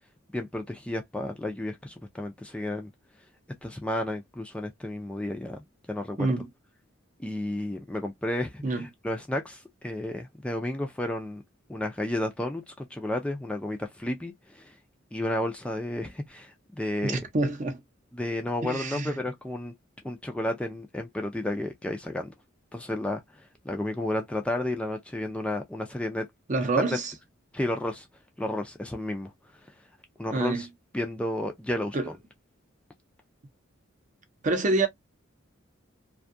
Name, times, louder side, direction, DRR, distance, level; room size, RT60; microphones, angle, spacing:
voice 1, 0.3-2.9 3.6-5.6 5.9-6.3 7.2-11.4 11.7-14.8 15.1-17.2 18.1-19.7 20.0-22.3 22.7-26.3 26.8-27.0 27.5-28.1 28.4-29.3 30.2-30.7 30.9-32.2, left 1 dB, 5° left, 0.3 m, -32 dB
voice 2, 17.0-17.8 18.6-19.2 26.5-27.1 30.3-30.6 31.9-32.1 34.4-34.9, right 2 dB, 40° right, 0.6 m, -27 dB
2.6 x 2.3 x 2.5 m
head